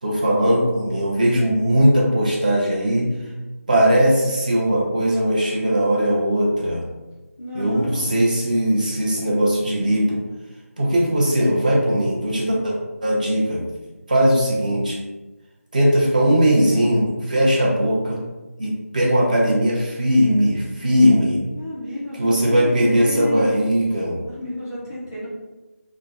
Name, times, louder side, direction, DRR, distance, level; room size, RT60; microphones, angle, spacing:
voice 1, 0.0-3.1 3.7-6.8 7.5-10.2 10.8-12.7 13.0-13.6 14.1-15.0 15.7-18.2 18.6-21.4 22.2-24.2, equal, 30° right, -4 dB, 0.7 m, -19 dB
voice 2, 7.4-8.1 21.5-23.7 24.3-25.3, left 1 dB, 15° left, -10 dB, 0.3 m, -31 dB
3.7 x 2.1 x 3.4 m, 1.1 s
figure-of-eight pair, 170°, 8 cm